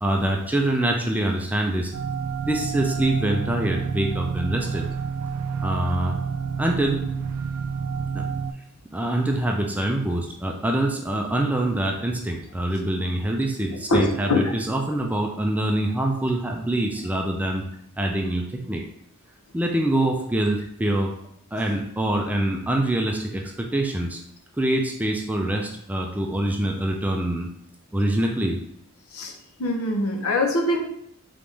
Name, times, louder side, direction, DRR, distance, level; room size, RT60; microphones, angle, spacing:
voice 1, 0.0-1.9 2.4-4.8 5.6-6.2 6.6-7.0 8.1-8.2 8.9-17.6 18.0-18.8 19.5-21.1 21.5-24.2 24.6-27.5 27.9-28.6, right 1 dB, 5° right, 1 dB, 0.3 m, -25 dB
sound 1, 1.9-8.5, right 6 dB, 80° right, 0.3 m, -29 dB
voice 2, 13.9-14.5 29.1-29.3 29.6-30.8, left 2 dB, 75° left, 3 dB, 0.7 m, -23 dB
3.9 x 3.5 x 3.2 m, 0.74 s
head